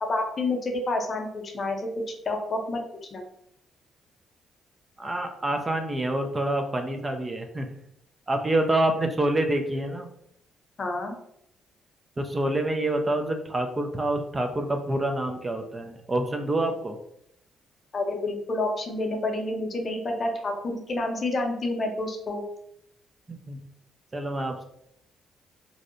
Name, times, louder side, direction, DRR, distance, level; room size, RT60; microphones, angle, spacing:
voice 1, 0.0-1.9 2.3-2.8 3.1-3.2 10.8-11.1 17.9-22.4, left 2 dB, 40° left, 2 dB, 0.5 m, -29 dB
voice 2, 5.0-7.7 8.3-10.1 12.2-17.0 23.3-23.6 24.1-24.6, right 1 dB, 25° right, 5 dB, 0.3 m, -27 dB
2.6 x 2.0 x 2.5 m, 0.74 s
cardioid pair, 90°, 0 cm